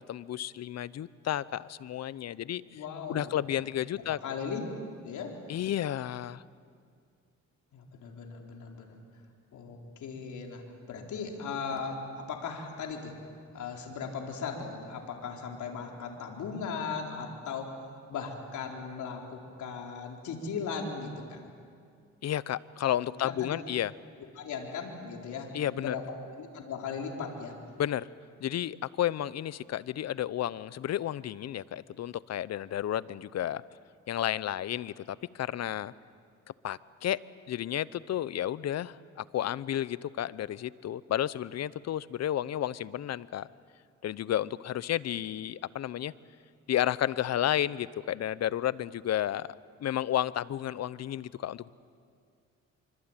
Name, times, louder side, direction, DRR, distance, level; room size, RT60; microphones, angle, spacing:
voice 1, 0.0-2.8 3.1-4.2 5.5-6.4 22.2-23.9 25.5-26.0 27.8-28.1 28.4-33.6 34.1-35.9 36.6-37.2 37.5-43.5 44.0-46.1 46.7-49.5 49.8-51.7, left 11 dB, 60° left, 18 dB, 0.8 m, -32 dB
voice 2, 2.7-3.4 3.9-4.6 5.0-5.4 7.7-9.0 9.5-13.1 13.5-21.4 23.0-23.6 24.4-26.0 26.4-27.6, left 5 dB, 75° left, 1 dB, 4.2 m, -38 dB
25.5 x 25.0 x 9.0 m, 2.2 s
cardioid pair, 90°, 30 cm